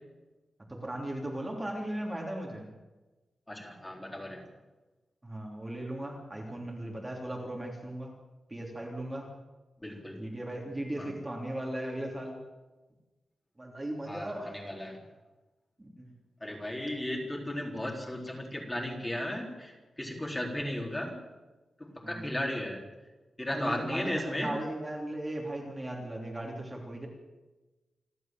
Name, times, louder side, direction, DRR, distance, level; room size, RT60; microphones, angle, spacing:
voice 1, 0.7-2.7 5.2-8.1 8.5-9.3 10.1-12.4 13.6-14.5 15.8-16.1 22.0-22.2 23.5-27.1, right 1 dB, 15° right, -1 dB, 3.2 m, -37 dB
voice 2, 3.5-4.4 9.8-10.2 11.0-11.1 14.1-15.0 16.4-21.1 21.8-22.9 23.4-24.5, left 1 dB, 15° left, 0 dB, 4.1 m, -35 dB
28.0 x 12.5 x 7.6 m, 1.1 s
wide cardioid pair, 150°, 0 cm